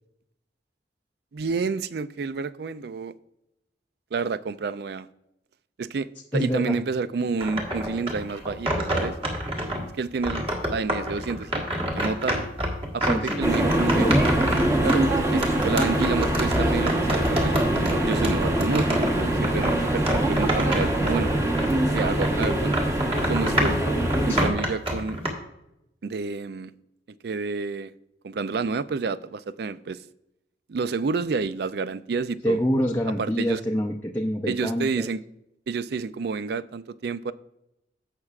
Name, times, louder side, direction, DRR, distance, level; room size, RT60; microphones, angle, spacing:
voice 1, 1.3-3.1 4.1-5.1 5.8-9.1 10.0-11.6 11.9-12.5 12.9-14.1 14.8-21.3 21.9-22.8 23.3-23.8 24.2-25.2 26.0-26.7 27.2-27.9 28.2-30.0 30.7-32.6 33.2-33.6 34.5-35.2 35.7-37.3, right 4 dB, 60° right, 15 dB, 0.4 m, -29 dB
voice 2, 6.3-6.8 13.0-13.5 13.9-14.2 24.3-24.5 32.4-35.1, equal, 10° left, 0 dB, 0.5 m, -26 dB
sound 1, 7.4-9.8 10.2-21.7 22.0-25.3, equal, 30° right, 1.7 m, -28 dB
sound 2, 13.4-24.5, right 1 dB, 15° right, 1.1 m, -24 dB
16.0 x 5.9 x 2.4 m, 0.84 s
head